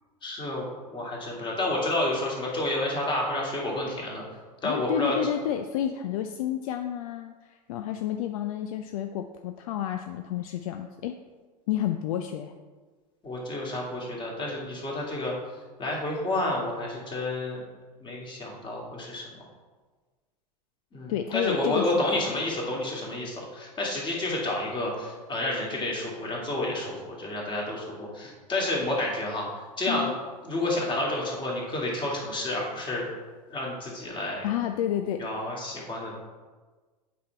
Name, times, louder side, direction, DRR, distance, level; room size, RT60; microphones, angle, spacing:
voice 1, 0.2-4.2 4.6-5.2 13.2-15.4 15.8-17.6 18.0-19.2 20.9-30.1 30.4-33.1 33.5-34.5 35.2-36.1, left 1 dB, 25° left, -2 dB, 2.2 m, -30 dB
voice 2, 4.6-11.1 11.7-12.5 21.1-22.1 29.9-30.2 34.4-35.3, left 10 dB, 60° left, 7 dB, 0.5 m, -30 dB
8.3 x 4.3 x 4.6 m, 1.4 s
hypercardioid pair, 90°, 20 cm